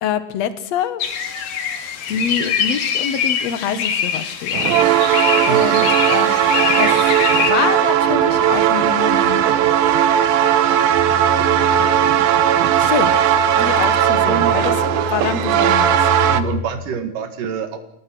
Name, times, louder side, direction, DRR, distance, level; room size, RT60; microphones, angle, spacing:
voice 1, 0.0-1.0 2.1-4.7 5.5-6.4 6.8-9.5 12.8-13.1 13.6-14.8 15.1-16.1, left 8 dB, 60° left, 13 dB, 2.2 m, -25 dB
sound 1, 1.0-7.5, left 7 dB, 80° left, 3.9 m, -23 dB
sound 2, 4.5-16.4, right 10 dB, 85° right, 2.9 m, -17 dB
voice 2, 5.5-5.9 13.5-13.8 14.3-14.6 16.3-17.8, right 7 dB, 70° right, 8 dB, 3.7 m, -26 dB
sound 3, 10.9-16.6, left 8 dB, 20° left, 6.8 m, -30 dB
28.0 x 18.0 x 6.2 m, 0.77 s
omnidirectional pair, 4.0 m